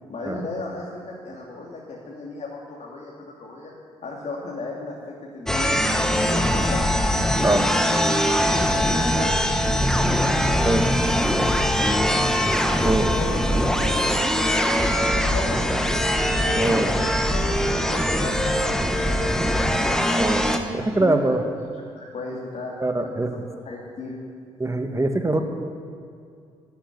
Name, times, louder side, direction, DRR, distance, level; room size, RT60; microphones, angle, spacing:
voice 1, 0.1-3.7 4.0-5.8 6.2-6.8 7.3-8.0 8.7-9.4 9.7-10.4 11.4-12.3 12.8-16.0 16.2-17.6 17.9-19.3 20.5-21.3 22.0-24.2, left 3 dB, 45° left, -2 dB, 2.8 m, -35 dB
sound 1, 5.5-20.6, equal, 5° left, 1.7 m, -22 dB
voice 2, 16.6-17.1 20.2-20.5 20.7-21.4 22.8-23.3 24.6-25.4, right 2 dB, 20° right, 6 dB, 1.9 m, -23 dB
12.5 x 10.5 x 9.6 m, 2.3 s
hypercardioid pair, 45°, 15 cm